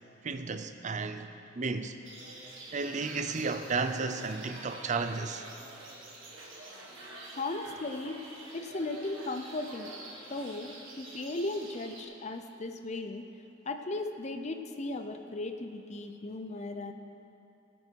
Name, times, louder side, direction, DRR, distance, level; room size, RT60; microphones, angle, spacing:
voice 1, 0.2-1.3 1.5-1.9 2.7-5.4, right 4 dB, 40° right, 0.5 m, -33 dB
sound 1, 2.0-12.0, right 2 dB, 85° right, 2.1 m, -47 dB
voice 2, 7.4-8.2 8.5-9.9 10.3-13.2 13.6-16.9, left 2 dB, 35° left, 0.6 m, -36 dB
16.5 x 8.5 x 4.6 m
head